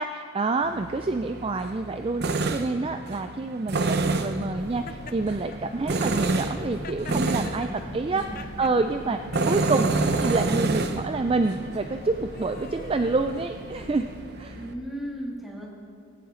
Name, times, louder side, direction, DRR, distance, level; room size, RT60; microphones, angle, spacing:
voice 1, 0.0-2.2 2.5-7.7 7.9-8.2 8.6-9.9 10.2-14.1 14.4-14.6, right 3 dB, 25° right, 8 dB, 0.4 m, -27 dB
Tools, 0.6-14.7, right 3 dB, 50° right, 0.8 m, -30 dB
sound 1, 4.4-14.2, equal, 70° right, 4.7 m, -43 dB
Laughter, 4.9-5.6 6.4-8.8 9.3-10.1 10.8-11.1 11.9-14.1, left 5 dB, 40° left, 0.6 m, -45 dB
voice 2, 7.0-8.5 9.0-9.3 14.5-15.7, right 1 dB, ahead, -3 dB, 2.4 m, -37 dB
18.5 x 16.5 x 3.8 m, 2.6 s
head